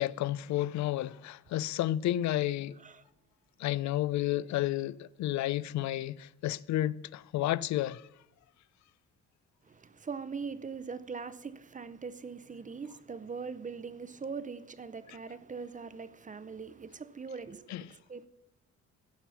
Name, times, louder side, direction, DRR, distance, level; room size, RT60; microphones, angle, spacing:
voice 1, 0.0-2.8 3.6-8.1 15.1-15.2 17.7-17.9, left 14 dB, 70° left, 0.4 m, -31 dB
voice 2, 2.7-3.1 9.6-18.3, right 5 dB, 25° right, 0.6 m, -41 dB
15.5 x 5.6 x 5.7 m
cardioid pair, 90°, 30 cm